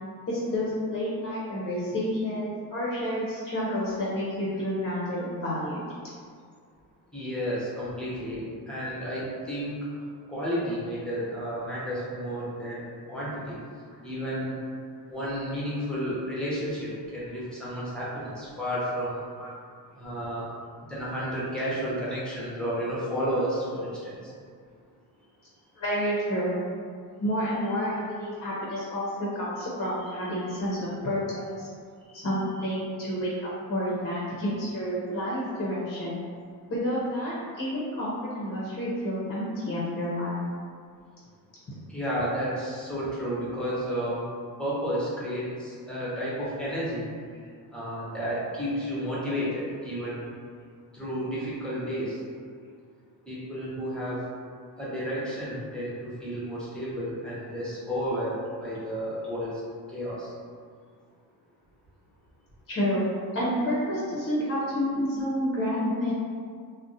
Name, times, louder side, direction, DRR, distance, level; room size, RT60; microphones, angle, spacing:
voice 1, 0.3-5.8 19.3-19.5 25.8-26.5 27.2-31.7 32.1-36.2 36.7-40.4 50.0-50.1 62.7-66.1, equal, 40° left, -6 dB, 0.6 m, -29 dB
voice 2, 7.1-9.8 10.3-13.6 14.0-14.5 15.1-19.2 19.9-20.5 20.8-24.3 30.5-30.6 41.9-44.3 44.6-47.1 47.7-50.3 50.9-52.2 53.3-54.2 54.8-59.6 59.9-60.3, equal, ahead, -8 dB, 0.8 m, -32 dB
2.5 x 2.1 x 3.8 m, 2.1 s
cardioid pair, 125°, 36 cm